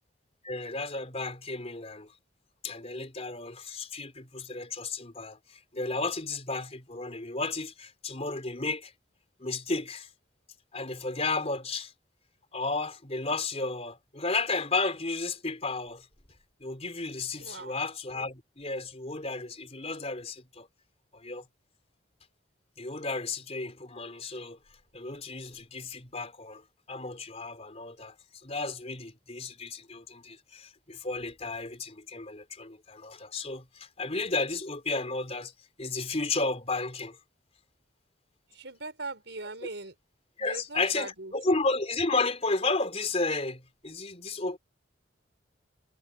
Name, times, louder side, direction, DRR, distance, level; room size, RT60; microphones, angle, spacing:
voice 1, 0.4-2.1 2.6-5.4 5.7-8.9 9.4-10.1 10.7-11.9 12.5-16.0 16.6-20.7 21.1-21.4 22.8-24.6 24.9-26.6 26.9-28.1 28.4-35.5 35.8-37.2 40.4-44.6, left 3 dB, 35° left, 4.3 m, -33 dB
voice 2, 17.4-17.7 38.5-39.9 40.4-41.3, right 3 dB, 70° right, 6.6 m, -40 dB
head